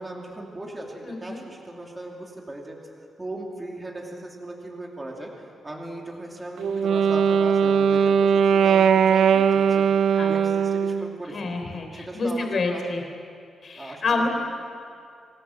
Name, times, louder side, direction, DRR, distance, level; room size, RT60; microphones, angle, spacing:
voice 1, 0.0-2.8 3.2-5.3 5.6-11.6 11.9-13.1 13.8-14.3, right 1 dB, 15° right, -1 dB, 2.7 m, -38 dB
voice 2, 1.0-1.4 10.2-10.3 11.3-13.0 13.6-14.3, left 3 dB, 40° left, 4 dB, 3.6 m, -28 dB
Wind instrument woodwind instrument, 6.6-11.1, right 7 dB, 75° right, 0.6 m, -20 dB
25.5 x 18.0 x 7.6 m, 2.4 s
wide cardioid pair, 160°, 0 cm